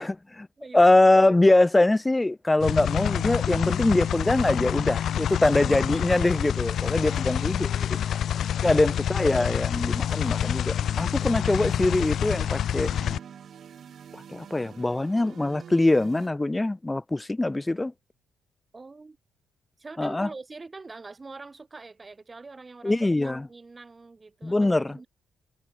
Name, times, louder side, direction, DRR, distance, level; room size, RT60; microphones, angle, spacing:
voice 1, 0.0-0.5 0.7-8.0 8.6-12.9 14.1-17.9 20.0-20.3 22.8-23.5 24.4-25.0, left 2 dB, 15° left, 0.5 m, -23 dB
sound 1, 2.6-13.2, left 10 dB, 65° left, 0.5 m, -27 dB
voice 2, 6.9-9.1 18.7-19.2 19.8-25.1, right 3 dB, 25° right, 5.7 m, -45 dB
sound 2, 10.8-16.3, right 8 dB, 60° right, 3.7 m, -46 dB
cardioid pair, 90°, 0 cm